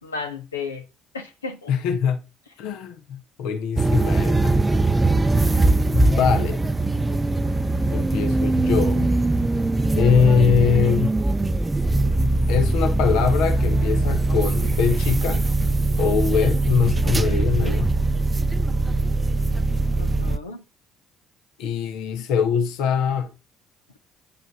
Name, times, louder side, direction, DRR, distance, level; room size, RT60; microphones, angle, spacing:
voice 1, 0.0-0.8 1.1-1.7 17.6-17.7 20.0-20.6, left 4 dB, 85° left, 1.1 m, -33 dB
voice 2, 1.7-2.2 2.6-4.6 5.9-6.6 7.9-9.1 9.9-11.1 12.5-15.5 16.0-17.9 21.6-23.3, left 6 dB, 65° left, 1.0 m, -22 dB
sound 1, 3.8-20.4, right 2 dB, 20° right, 0.5 m, -21 dB
8.6 x 5.2 x 6.0 m
figure-of-eight pair, 50°, 0 cm